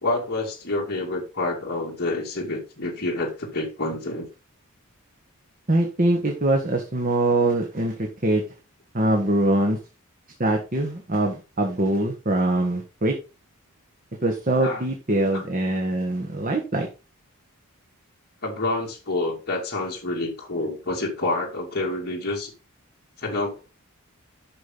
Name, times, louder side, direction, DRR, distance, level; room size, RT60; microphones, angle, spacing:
voice 1, 0.0-4.3 14.6-14.8 15.3-15.4 18.4-22.5 23.2-23.6, left 2 dB, 45° left, -2 dB, 2.2 m, -28 dB
voice 2, 5.7-8.4 8.9-9.8 10.4-13.1 14.2-16.9, right 1 dB, 35° right, 2 dB, 1.3 m, -23 dB
9.9 x 6.1 x 3.8 m, 0.30 s
head